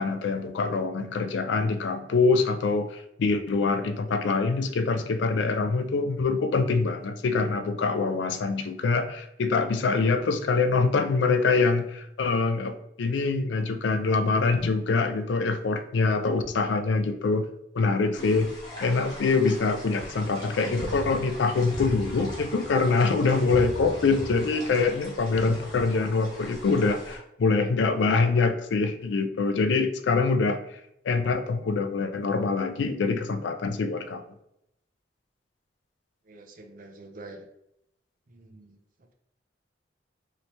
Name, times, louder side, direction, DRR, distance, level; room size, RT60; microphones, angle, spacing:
voice 1, 0.0-17.5 17.7-18.5 18.8-30.8 31.0-34.2, left 4 dB, 75° left, 9 dB, 0.4 m, -24 dB
sound 1, 18.1-27.2, equal, 20° left, 0.9 m, -39 dB
voice 2, 36.3-37.5 38.3-39.1, right 2 dB, 45° right, 4 dB, 0.4 m, -47 dB
3.2 x 2.8 x 2.9 m, 0.79 s
head